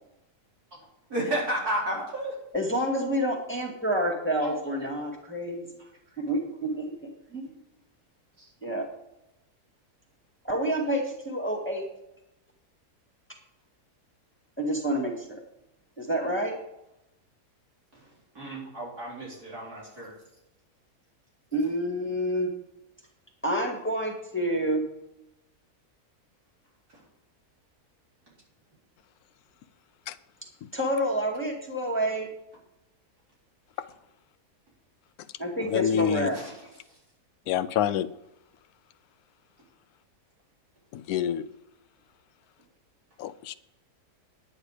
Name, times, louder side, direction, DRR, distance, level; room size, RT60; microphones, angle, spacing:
voice 1, 1.1-2.3 4.4-4.6 18.3-20.1 36.3-36.5, right 1 dB, 75° right, -5 dB, 4.8 m, -32 dB
voice 2, 2.5-5.7 6.2-7.5 8.6-8.9 10.4-11.9 14.6-15.4 16.0-16.5 21.5-22.5 23.4-24.8 30.7-32.3 35.4-36.4, equal, 10° left, 0 dB, 1.9 m, -28 dB
voice 3, 35.6-36.3 37.5-38.1 40.9-41.4 43.2-43.5, left 10 dB, 75° left, 12 dB, 1.1 m, -27 dB
10.0 x 9.9 x 5.0 m, 0.87 s
omnidirectional pair, 1.6 m